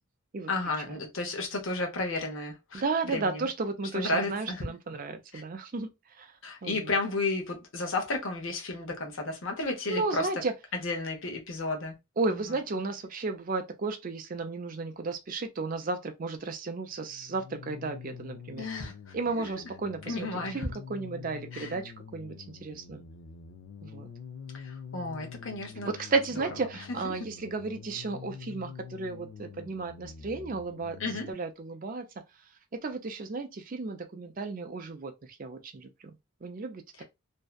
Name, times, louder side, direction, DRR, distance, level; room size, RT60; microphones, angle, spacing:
voice 1, 0.5-2.8 3.1-3.5 3.9-4.7 5.3-5.4 6.4-10.3 10.7-12.0 12.3-12.6 18.6-19.5 20.1-20.7 21.5-21.8 24.5-25.9 26.4-26.5 27.0-27.3 31.0-31.3 37.0-37.1, left 2 dB, 60° left, 0.8 m, -33 dB
voice 2, 2.7-5.9 6.2-6.3 6.6-6.9 9.9-10.5 12.2-18.6 19.1-23.0 23.8-24.1 25.8-32.1 32.7-35.1 35.4-35.9 36.4-36.8, right 3 dB, 40° right, 0.4 m, -33 dB
sound 1, 16.9-31.3, left 6 dB, 80° left, 0.4 m, -46 dB
2.6 x 2.2 x 2.3 m
head